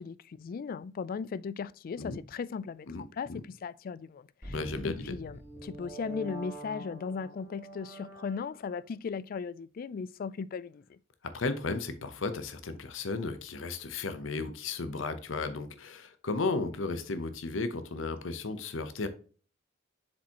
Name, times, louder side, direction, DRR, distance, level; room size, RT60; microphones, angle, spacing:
voice 1, 0.0-4.6 4.8-11.0, left 5 dB, 50° left, 0.3 m, -37 dB
voice 2, 2.9-3.4 4.5-5.1 11.2-19.1, left 3 dB, 85° left, 0.7 m, -34 dB
sound 1, 4.4-8.8, right 2 dB, 15° right, 2.9 m, -45 dB
7.0 x 5.1 x 2.8 m
head